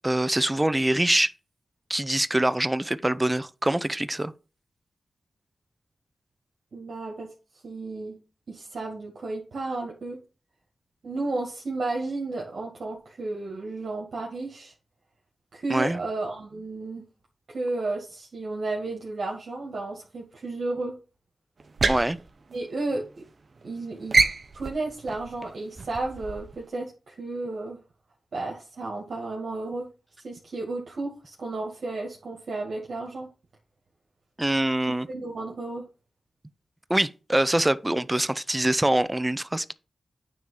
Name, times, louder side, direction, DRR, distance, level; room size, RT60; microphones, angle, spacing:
voice 1, 0.0-1.3 1.9-4.3 15.7-16.0 21.9-22.2 34.4-35.1 36.9-39.7, right 1 dB, 15° right, 0.6 m, -24 dB
voice 2, 6.7-7.3 7.6-8.2 8.5-10.2 11.0-14.7 15.5-17.0 17.5-21.0 22.5-23.2 23.6-24.3 24.5-27.8 28.3-29.9 30.2-33.3 35.1-35.8, right 2 dB, 70° right, 2.1 m, -33 dB
sound 1, 21.6-23.2 23.5-23.8 24.1-26.6, right 3 dB, 55° right, 0.9 m, -27 dB
9.3 x 3.7 x 5.6 m
cardioid pair, 70°, 0 cm